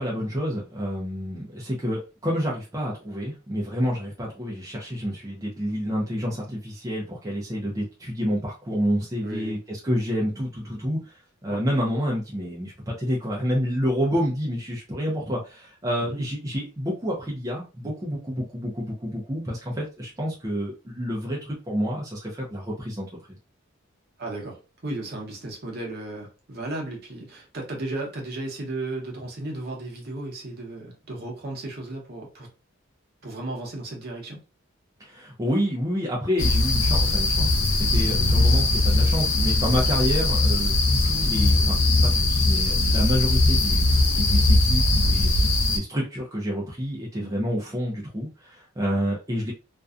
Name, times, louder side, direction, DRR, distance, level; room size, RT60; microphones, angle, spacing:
voice 1, 0.0-23.1 35.0-40.8 41.0-45.3 45.7-49.5, equal, 15° right, 0.5 m, -28 dB
voice 2, 9.2-9.6 11.5-11.6 16.0-16.2 24.2-32.5 33.2-34.4 47.1-47.3, right 2 dB, 50° right, 0.8 m, -35 dB
sound 1, 36.4-45.8, left 2 dB, 65° left, 0.5 m, -20 dB
2.5 x 2.2 x 2.3 m
head